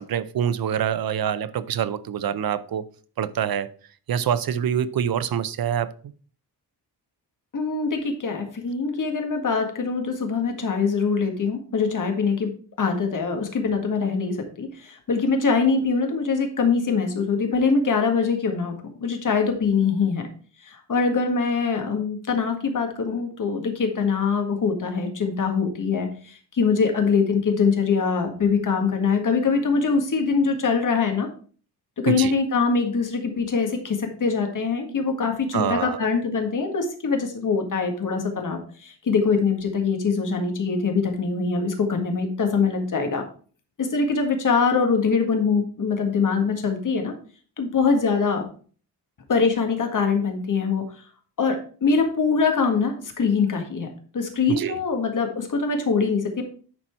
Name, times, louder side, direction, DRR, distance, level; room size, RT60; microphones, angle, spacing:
voice 1, 0.0-2.9 3.2-3.7 4.1-6.1 32.1-32.3 35.5-36.1 54.5-54.8, right 9 dB, 60° right, 0.6 m, -25 dB
voice 2, 7.5-12.5 12.8-20.3 20.6-31.3 32.0-43.2 43.8-47.1 47.6-48.5 49.3-51.1 51.4-56.4, left 5 dB, 50° left, 1.7 m, -23 dB
10.5 x 4.4 x 4.4 m
wide cardioid pair, 135°, 41 cm